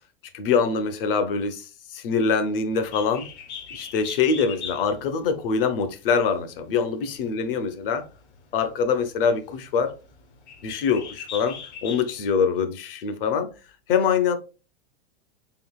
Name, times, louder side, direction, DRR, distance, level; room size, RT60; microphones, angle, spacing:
voice 1, 0.3-3.3 3.7-8.1 8.5-9.9 10.6-13.5 13.9-14.4, left 5 dB, 55° left, 0.7 m, -24 dB
Bird, 2.7-12.3, left 6 dB, 80° left, 1.2 m, -41 dB
3.8 x 3.8 x 2.3 m
supercardioid pair, 165°, 33 cm